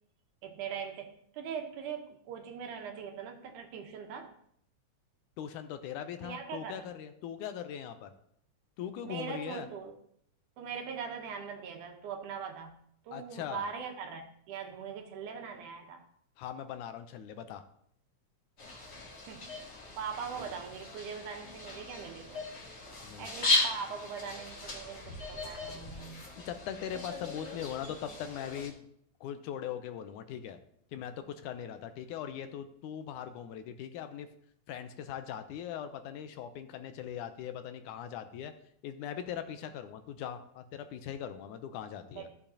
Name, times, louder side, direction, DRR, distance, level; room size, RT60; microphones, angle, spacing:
voice 1, 0.4-4.3 6.2-6.9 9.0-9.9 10.6-12.8 13.0-16.0 19.3-19.6 20.0-22.4 23.2-26.3 42.1-42.3, right 6 dB, 80° right, 4 dB, 2.5 m, -41 dB
voice 2, 5.4-8.1 8.8-9.7 13.1-13.7 16.4-17.6 23.0-23.3 26.5-28.9 29.2-30.6 30.9-34.3 34.7-38.5 38.8-42.3, left 9 dB, 85° left, 9 dB, 2.1 m, -40 dB
sound 1, 18.6-28.7, left 2 dB, 35° left, 1.8 m, -37 dB
14.0 x 6.9 x 2.8 m, 0.68 s
omnidirectional pair, 3.5 m